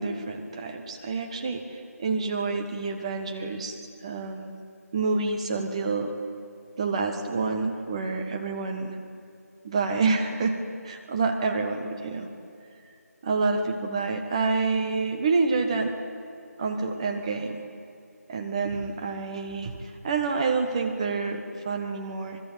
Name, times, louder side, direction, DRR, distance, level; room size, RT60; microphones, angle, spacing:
voice 1, 0.0-4.6 4.9-6.1 6.8-9.0 9.6-12.3 13.2-15.9 16.6-17.6 18.3-22.4, right 4 dB, 20° right, 4 dB, 1.4 m, -28 dB
26.0 x 22.0 x 9.1 m, 2.6 s
figure-of-eight pair, 170°, 9 cm